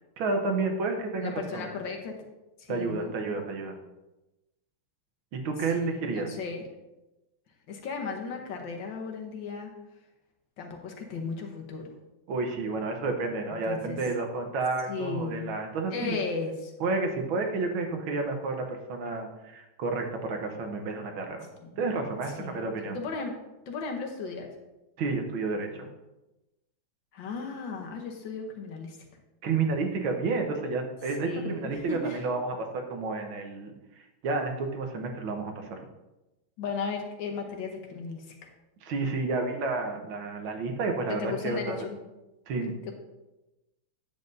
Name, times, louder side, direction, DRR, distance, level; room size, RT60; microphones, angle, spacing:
voice 1, 0.2-1.6 2.7-3.8 5.3-6.3 12.3-16.2 16.8-21.5 21.8-23.0 25.0-25.9 29.4-33.7 34.2-35.8 38.8-41.8 42.5-42.7, right 3 dB, 75° right, 4 dB, 1.7 m, -30 dB
voice 2, 1.2-2.1 2.6-3.2 5.7-6.6 7.7-9.7 10.6-11.9 13.7-14.0 14.9-15.6 15.9-16.7 21.6-21.9 22.4-23.4 23.7-24.5 27.1-29.0 31.2-32.2 36.6-38.5 41.1-42.0 42.9-43.0, left 4 dB, 65° left, 2 dB, 1.6 m, -35 dB
9.2 x 7.5 x 2.6 m, 1.0 s
omnidirectional pair, 2.3 m